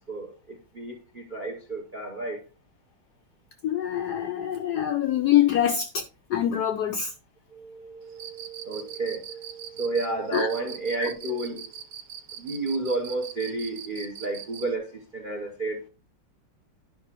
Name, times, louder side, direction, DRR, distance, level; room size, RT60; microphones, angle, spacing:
voice 1, 0.1-2.4 7.5-11.7 12.3-15.8, right 3 dB, 45° right, 0.7 m, -32 dB
voice 2, 3.6-6.0 6.3-7.1 10.3-10.5, left 10 dB, 75° left, 0.9 m, -24 dB
Cricket, 8.1-14.7, right 9 dB, 85° right, 1.7 m, -41 dB
11.0 x 5.4 x 2.9 m
omnidirectional pair, 2.3 m